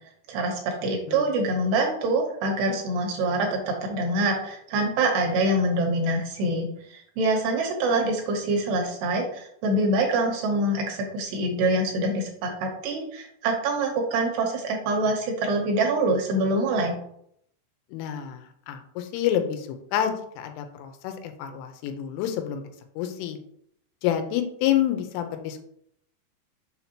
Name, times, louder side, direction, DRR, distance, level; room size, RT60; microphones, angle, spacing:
voice 1, 0.3-17.0, right 2 dB, 75° right, 1 dB, 2.6 m, -25 dB
voice 2, 17.9-22.6 23.0-23.4 24.0-25.6, left 10 dB, 90° left, 6 dB, 3.2 m, -28 dB
7.2 x 5.8 x 2.9 m, 0.70 s
omnidirectional pair, 5.6 m